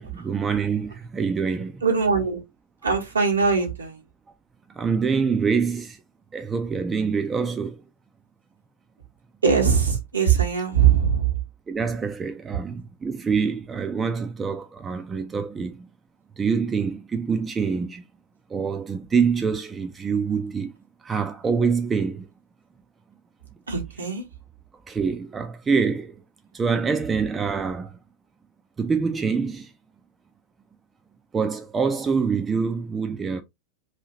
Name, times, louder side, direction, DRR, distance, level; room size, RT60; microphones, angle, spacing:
voice 1, 0.0-1.8 4.7-6.0 6.3-7.8 11.7-15.9 16.4-18.0 18.5-20.7 21.0-22.3 24.9-26.2 26.5-28.0 28.8-29.7 31.3-33.4, right 5 dB, 15° right, 0.4 m, -25 dB
voice 2, 1.8-2.4 2.8-4.0 9.4-11.4 23.7-24.2, right 6 dB, 75° right, 1.2 m, -21 dB
2.8 x 2.7 x 2.8 m
figure-of-eight pair, 90°, 0 cm